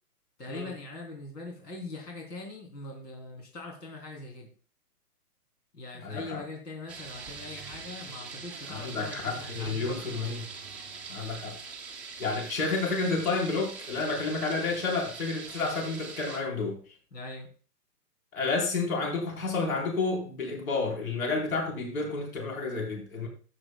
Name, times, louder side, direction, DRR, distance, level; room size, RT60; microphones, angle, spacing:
voice 1, 0.4-4.5 5.7-10.4 17.1-17.5, left 2 dB, 85° left, 0 dB, 3.3 m, -42 dB
voice 2, 6.0-6.4 8.7-10.4 11.1-11.5 12.2-16.8 18.3-23.3, left 3 dB, 60° left, 1 dB, 3.9 m, -30 dB
sound 1, 6.9-16.4, right 5 dB, 5° right, 0.7 m, -43 dB
12.5 x 8.8 x 2.2 m, 0.39 s
hypercardioid pair, 150°, 47 cm